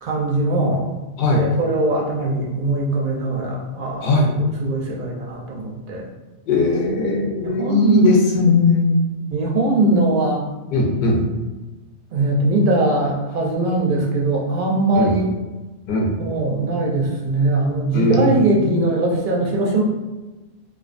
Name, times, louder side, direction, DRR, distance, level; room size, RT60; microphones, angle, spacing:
voice 1, 0.0-0.9 1.3-6.0 7.4-8.1 9.3-10.5 12.1-15.3 16.2-19.8, right 2 dB, 60° right, -2 dB, 0.6 m, -21 dB
voice 2, 6.5-9.0 10.7-11.2 14.9-15.1 15.9-16.1 17.9-18.4 18.6-18.9, left 3 dB, 60° left, 0 dB, 0.7 m, -18 dB
2.3 x 2.3 x 2.4 m, 1.2 s
omnidirectional pair, 1.2 m